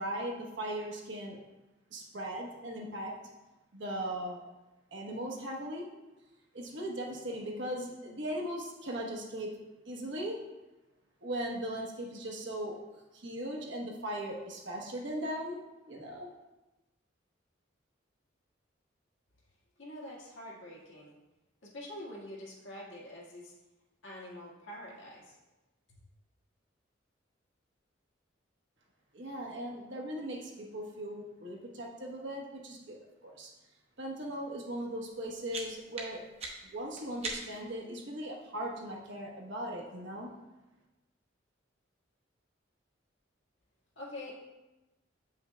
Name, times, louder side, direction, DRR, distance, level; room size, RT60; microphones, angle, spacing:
voice 1, 0.0-1.4 1.9-3.1 3.7-4.4 4.9-5.9 6.5-9.5 9.8-10.4 11.2-12.8 13.1-15.6 15.9-16.3 29.1-33.0 33.2-33.5 34.0-36.2 36.6-40.3, right 1 dB, 70° right, -2 dB, 1.1 m, -38 dB
voice 2, 19.8-21.1 21.6-23.5 24.0-25.4 25.9-26.0 43.9-44.3, left 1 dB, 75° left, -4 dB, 1.7 m, -45 dB
sound 1, 35.1-37.8, right 3 dB, 30° right, 0.8 m, -42 dB
8.2 x 5.5 x 2.2 m, 1.0 s
head